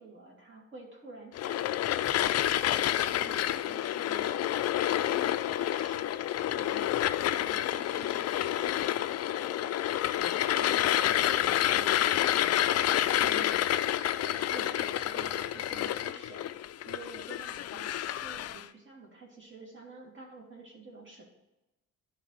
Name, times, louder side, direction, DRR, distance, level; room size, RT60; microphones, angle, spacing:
voice 1, 0.0-2.6 3.0-4.4 4.7-9.8 10.0-13.6 14.1-16.5 16.8-21.2, right 3 dB, 40° right, -2 dB, 2.8 m, -49 dB
sound 1, 1.3-18.6, left 12 dB, 55° left, 0.4 m, -29 dB
10.5 x 3.5 x 5.7 m, 0.96 s
cardioid pair, 90°, 30 cm